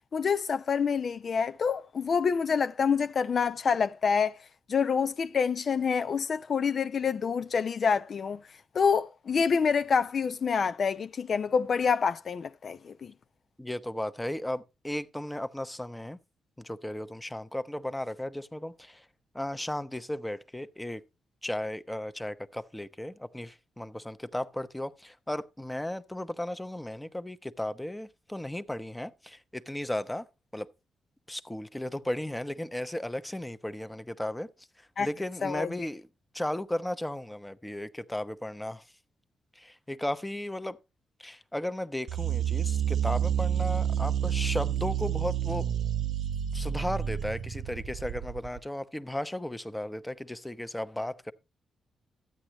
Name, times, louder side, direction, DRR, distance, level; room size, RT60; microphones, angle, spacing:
voice 1, 0.1-4.4 4.7-8.4 8.7-13.1 35.0-35.1 35.4-35.7, left 6 dB, 55° left, 0.4 m, -27 dB
voice 2, 13.6-16.2 16.6-19.0 19.3-21.0 21.4-30.3 30.5-30.7 31.3-34.5 35.0-36.0 36.3-38.8 39.6-40.8 41.2-45.7 46.5-51.3, left 1 dB, 10° left, 0.8 m, -35 dB
sound 1, 42.1-48.6, right 9 dB, 70° right, 0.8 m, -29 dB
13.0 x 9.0 x 3.0 m
cardioid pair, 75°, 0 cm